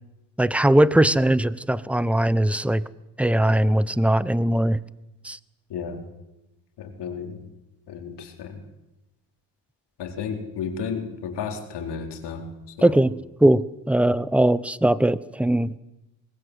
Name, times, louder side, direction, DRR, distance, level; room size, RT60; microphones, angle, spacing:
voice 1, 0.4-2.8 3.2-4.8 5.2-5.4 12.8-13.1 13.4-15.8, right 1 dB, 5° right, 19 dB, 0.8 m, -20 dB
voice 2, 5.7-6.0 6.8-7.5 7.9-8.6 10.0-13.0, left 6 dB, 75° left, 4 dB, 4.1 m, -33 dB
23.5 x 19.5 x 8.1 m, 0.95 s
cardioid pair, 90°, 41 cm